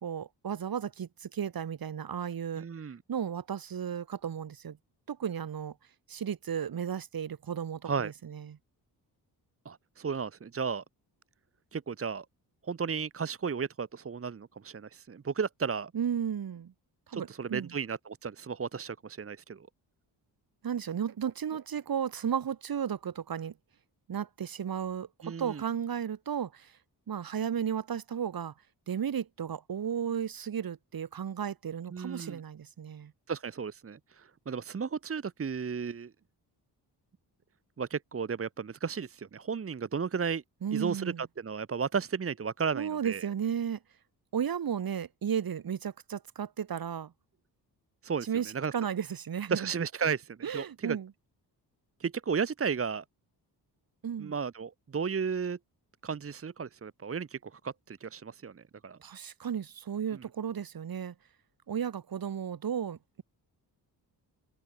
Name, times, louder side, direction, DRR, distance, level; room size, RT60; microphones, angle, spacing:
voice 1, 0.0-2.6 3.1-4.8 5.1-5.7 6.1-8.6 15.9-16.7 17.1-17.7 20.6-23.5 24.1-26.7 27.1-28.5 28.9-33.1 40.6-41.2 42.7-43.8 44.3-47.1 48.2-49.7 50.4-51.1 54.0-54.3 59.0-61.1 61.7-63.2, right 8 dB, 55° right, 2.7 m, -34 dB
voice 2, 2.6-3.0 7.9-8.1 9.6-10.8 11.7-12.2 12.6-15.9 17.1-19.7 25.2-25.6 31.9-32.4 33.3-36.1 37.8-40.4 40.7-43.3 48.0-48.3 48.5-48.7 49.5-51.0 52.0-53.0 54.2-55.6 56.0-59.0 60.1-60.2, right 6 dB, 35° right, 1.3 m, -34 dB
open air
cardioid pair, 110°, 41 cm